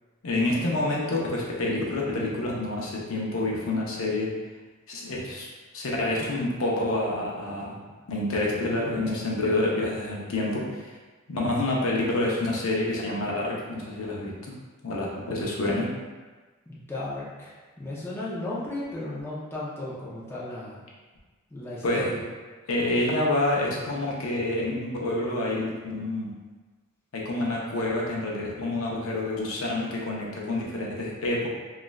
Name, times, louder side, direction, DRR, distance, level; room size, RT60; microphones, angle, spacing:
voice 1, 0.2-4.3 4.9-5.5 5.7-7.8 8.1-10.9 11.3-14.5 14.8-15.9 21.8-22.1 22.7-26.3 27.1-31.5, left 2 dB, 70° left, -3 dB, 0.5 m, -28 dB
voice 2, 16.7-20.8 21.5-22.3, left 1 dB, 10° left, -8 dB, 0.5 m, -35 dB
3.1 x 2.4 x 2.2 m, 1.3 s
head